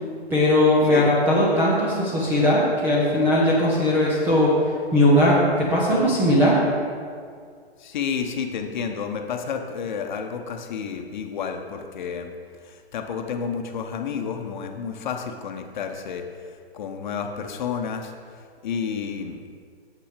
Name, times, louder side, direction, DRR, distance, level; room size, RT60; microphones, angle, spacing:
voice 1, 0.3-6.6, left 1 dB, 5° right, -6 dB, 0.4 m, -19 dB
voice 2, 7.8-12.3 12.6-16.2 16.7-18.1 18.6-19.4, left 6 dB, 45° left, 5 dB, 0.9 m, -30 dB
7.8 x 6.0 x 5.0 m, 2.1 s
hypercardioid pair, 140°, 32 cm